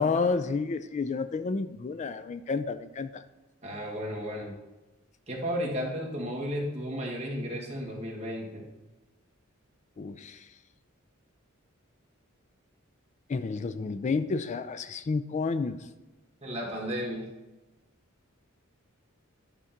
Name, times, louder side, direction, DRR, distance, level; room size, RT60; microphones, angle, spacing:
voice 1, 0.0-3.2 10.0-10.5 13.3-15.8, left 4 dB, 35° left, 12 dB, 0.3 m, -30 dB
voice 2, 3.6-4.5 5.3-8.7 16.4-17.3, equal, 30° right, -2 dB, 1.9 m, -33 dB
9.9 x 3.7 x 5.8 m, 1.1 s
head